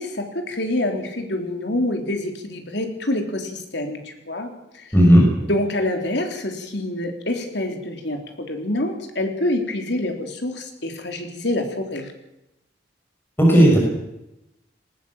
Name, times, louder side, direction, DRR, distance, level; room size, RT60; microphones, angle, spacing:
voice 1, 0.0-4.5 4.7-4.9 5.5-12.1, left 1 dB, 65° left, 4 dB, 3.7 m, -26 dB
voice 2, 4.9-5.3 13.4-13.8, equal, 10° left, -1 dB, 5.4 m, -12 dB
20.0 x 18.5 x 7.3 m, 0.89 s
head